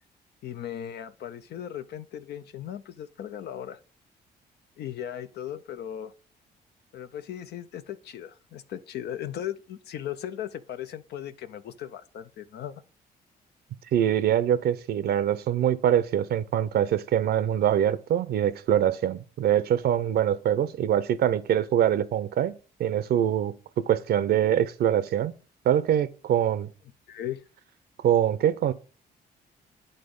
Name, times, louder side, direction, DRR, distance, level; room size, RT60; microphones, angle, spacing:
voice 1, 0.4-3.8 4.8-6.1 6.9-12.8 27.1-27.4, left 10 dB, 70° left, 0.5 m, -37 dB
voice 2, 13.9-23.5 23.9-25.3 25.7-26.7 28.0-28.7, right 10 dB, 70° right, 0.6 m, -24 dB
8.8 x 3.9 x 5.2 m
cardioid pair, 85°, 17 cm